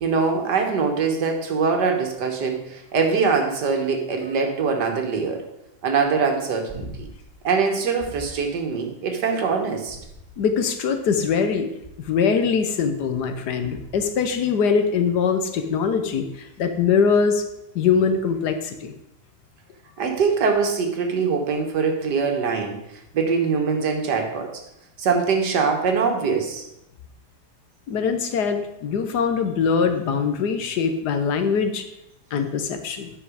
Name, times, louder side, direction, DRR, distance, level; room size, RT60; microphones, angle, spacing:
voice 1, 0.0-5.4 5.8-7.1 7.4-10.0 20.0-22.8 23.1-24.5 25.0-26.6, right 5 dB, 85° right, 3 dB, 1.9 m, -23 dB
sound 1, 6.7-7.3 8.0-8.5 9.8-10.6 11.8-12.3 13.7-14.2 16.5-16.6, right 2 dB, 25° right, 1.6 m, -41 dB
voice 2, 10.4-11.7 12.1-16.2 16.6-17.4 17.7-18.9 27.9-31.8 32.3-33.1, left 6 dB, 80° left, 7 dB, 1.5 m, -22 dB
9.4 x 5.8 x 4.9 m, 0.84 s
omnidirectional pair, 1.8 m